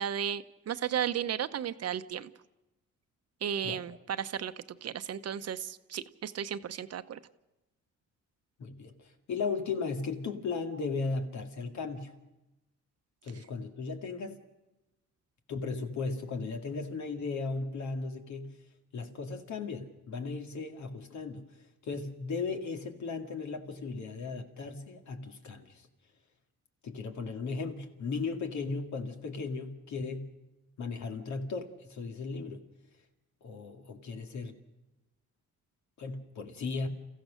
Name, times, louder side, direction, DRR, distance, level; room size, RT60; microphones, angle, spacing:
voice 1, 0.0-2.3 3.4-7.2, right 9 dB, 55° right, 0.9 m, -34 dB
voice 2, 8.6-12.1 13.2-14.3 15.5-18.6 18.9-21.5 21.8-25.9 26.8-30.4 30.8-32.6 33.4-34.6 36.0-36.9, left 4 dB, 70° left, 2.3 m, -36 dB
29.0 x 15.0 x 6.4 m
cardioid pair, 90°, 30 cm